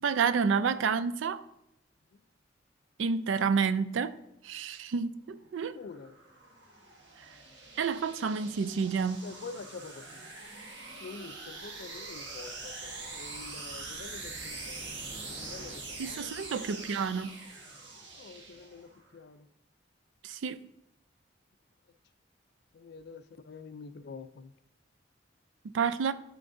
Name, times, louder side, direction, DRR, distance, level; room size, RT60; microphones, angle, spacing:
voice 1, 0.0-1.4 3.0-4.1 4.4-5.8 7.8-9.2 16.0-17.3 20.2-20.6 25.7-26.1, right 5 dB, 90° right, 0.4 m, -29 dB
sound 1, 5.6-19.0, right 3 dB, 75° right, 1.4 m, -44 dB
voice 2, 5.7-6.1 9.2-10.0 11.0-16.4 18.2-19.4 22.7-24.5, left 4 dB, 60° left, 0.4 m, -47 dB
12.5 x 4.5 x 2.6 m
head